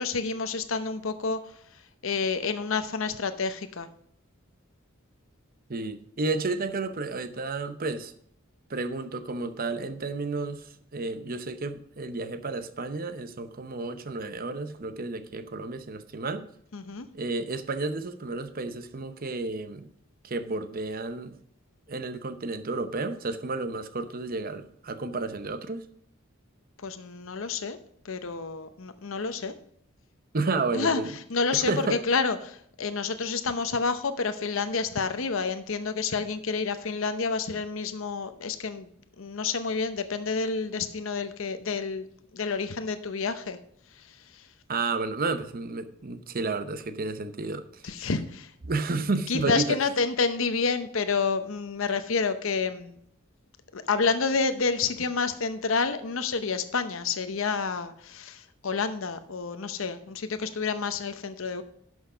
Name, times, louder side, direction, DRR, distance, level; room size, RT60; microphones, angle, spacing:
voice 1, 0.0-3.9 16.7-17.1 26.8-27.8 28.0-29.5 30.7-31.0 31.3-38.9 39.2-42.1 42.3-43.6 43.9-44.5 47.8-48.5 49.3-53.0 53.7-61.6, left 4 dB, 70° left, 10 dB, 0.8 m, -29 dB
voice 2, 5.7-8.1 8.7-16.5 17.1-19.9 20.2-21.4 21.9-25.8 30.3-31.1 31.5-32.0 44.7-47.9 48.7-49.8, right 3 dB, 45° right, 11 dB, 0.8 m, -31 dB
11.0 x 6.3 x 5.0 m, 0.65 s
head